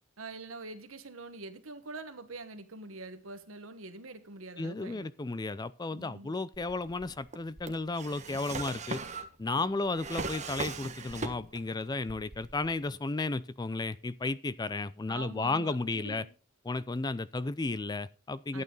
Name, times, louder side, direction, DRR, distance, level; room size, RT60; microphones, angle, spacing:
voice 1, 0.2-5.1 5.9-6.3 9.6-9.8 15.1-16.3 18.5-18.6, right 3 dB, 75° right, 1.4 m, -45 dB
voice 2, 4.6-9.0 9.4-16.3 16.6-18.6, left 3 dB, 20° left, 0.4 m, -33 dB
Drawer open or close, 6.5-11.7 12.0-12.9, right 3 dB, 35° right, 1.2 m, -39 dB
12.0 x 9.0 x 3.9 m
head